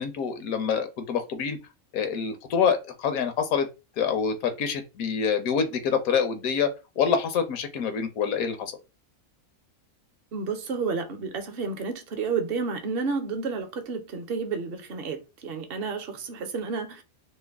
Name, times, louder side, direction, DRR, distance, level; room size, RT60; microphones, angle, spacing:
voice 1, 0.0-1.6 1.9-3.7 4.0-6.7 7.0-8.7, left 6 dB, 75° left, 1.1 m, -26 dB
voice 2, 10.3-17.0, right 4 dB, 55° right, 0.7 m, -31 dB
3.1 x 2.1 x 3.4 m
omnidirectional pair, 1.5 m